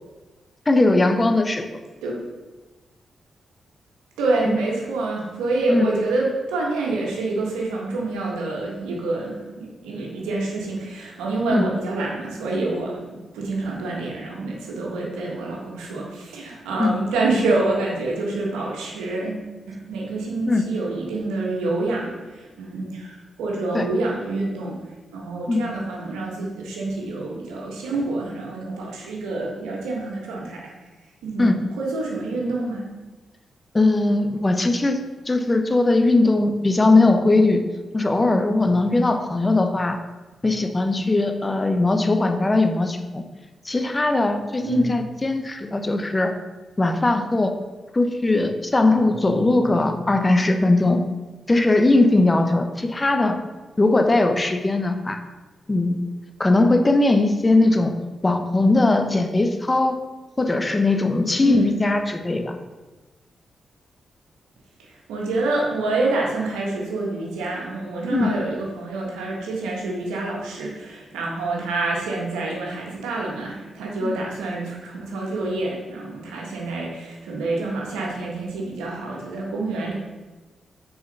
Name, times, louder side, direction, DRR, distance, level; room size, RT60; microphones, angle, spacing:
voice 1, 0.7-1.6 4.5-4.6 5.7-5.9 11.5-11.7 16.8-16.9 20.5-20.7 23.7-23.9 25.5-25.6 31.4-31.6 33.7-37.6 37.9-40.0 40.4-43.2 43.6-46.3 46.8-47.5 47.9-51.1 51.5-53.4 53.8-55.2 55.7-56.0 56.4-58.0 58.2-60.0 60.4-62.6 68.1-68.3 74.0-74.1, left 2 dB, 30° left, 6 dB, 0.9 m, -19 dB
voice 2, 4.2-24.8 25.1-30.7 31.2-32.9 44.6-44.9 61.4-61.7 64.8-79.9, right 2 dB, 90° right, -2 dB, 1.6 m, -27 dB
6.3 x 4.9 x 5.4 m, 1.2 s
supercardioid pair, 45°, 0 cm